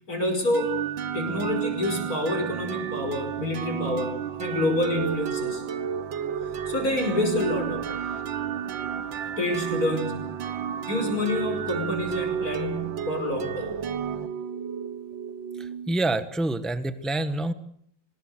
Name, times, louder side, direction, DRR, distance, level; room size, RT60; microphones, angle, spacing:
voice 1, 0.1-0.8 1.1-5.6 6.7-8.2 9.4-10.2 10.9-13.7, left 1 dB, 45° left, 4 dB, 5.9 m, -28 dB
sound 1, 0.5-16.2, right 8 dB, 65° right, 1.9 m, -32 dB
voice 2, 15.9-17.5, right 2 dB, ahead, 11 dB, 0.9 m, -26 dB
24.0 x 20.0 x 8.1 m, 0.67 s
omnidirectional pair, 2.3 m